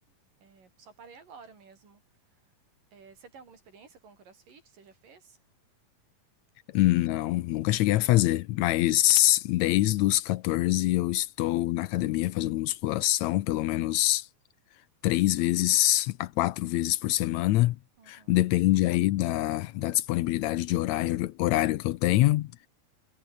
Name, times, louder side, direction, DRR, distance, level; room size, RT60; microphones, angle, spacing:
voice 1, 0.4-2.5 2.9-5.4 18.0-18.4, right 5 dB, 70° right, 6.6 m, -53 dB
voice 2, 6.7-14.3 15.0-17.8 18.1-22.7, left 16 dB, 80° left, 1.6 m, -25 dB
omnidirectional pair, 4.0 m